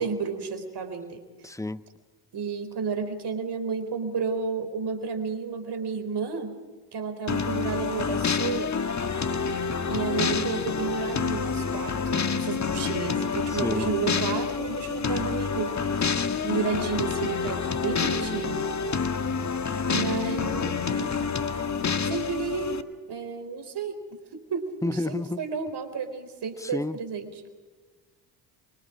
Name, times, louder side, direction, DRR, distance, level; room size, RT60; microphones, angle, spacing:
voice 1, 0.0-1.3 2.3-6.6 6.9-8.8 9.9-16.1 16.4-18.7 19.9-21.1 22.1-22.8 23.1-24.0 24.3-27.3, right 5 dB, 55° right, 4.1 m, -32 dB
voice 2, 1.4-1.8 13.5-13.9 19.7-19.9 24.8-25.4 26.6-27.0, left 2 dB, 5° left, 1.0 m, -31 dB
sound 1, 7.3-22.8, left 5 dB, 35° left, 1.7 m, -28 dB
27.5 x 24.5 x 5.1 m
hypercardioid pair, 55°, 49 cm